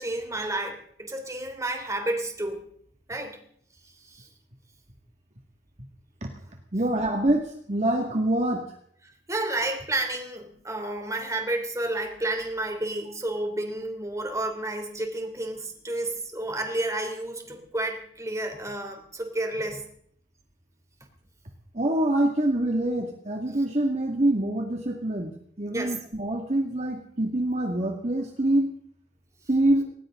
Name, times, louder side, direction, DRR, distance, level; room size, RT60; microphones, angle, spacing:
voice 1, 0.0-2.6 3.1-3.4 4.0-4.3 9.3-19.8 25.7-26.0, right 2 dB, 20° right, 4 dB, 3.2 m, -31 dB
voice 2, 6.7-8.8 21.7-28.7 29.5-29.8, right 1 dB, 40° right, 2 dB, 2.1 m, -25 dB
19.5 x 19.5 x 3.8 m, 0.63 s
head